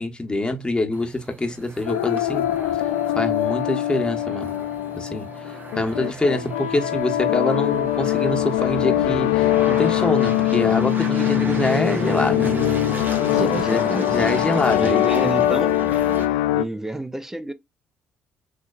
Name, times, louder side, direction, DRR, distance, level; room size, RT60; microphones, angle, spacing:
voice 1, 0.0-2.5 3.1-4.5 4.9-12.5 13.7-13.8 14.1-15.0, left 2 dB, 15° left, 1.2 m, -25 dB
sound 1, 0.9-16.2, right 3 dB, 30° right, 1.8 m, -34 dB
sound 2, 1.9-16.6, left 14 dB, 70° left, 0.3 m, -22 dB
voice 2, 13.3-14.2 14.7-15.8 16.5-17.5, right 1 dB, 5° right, 0.7 m, -29 dB
6.2 x 2.8 x 2.4 m
figure-of-eight pair, 45°, 6 cm